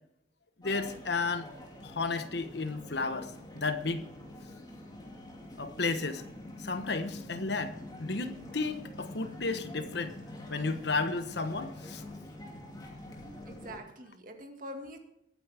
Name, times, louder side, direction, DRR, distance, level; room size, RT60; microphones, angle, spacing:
voice 1, 0.6-1.5 1.8-4.1 5.6-6.2 6.6-10.1 10.5-12.0, left 3 dB, 60° left, 9 dB, 1.1 m, -33 dB
sound 1, 0.6-13.8, left 1 dB, 20° left, 2.5 m, -46 dB
voice 2, 13.2-15.0, equal, 45° right, 4 dB, 2.0 m, -45 dB
21.5 x 9.5 x 3.5 m, 0.79 s
head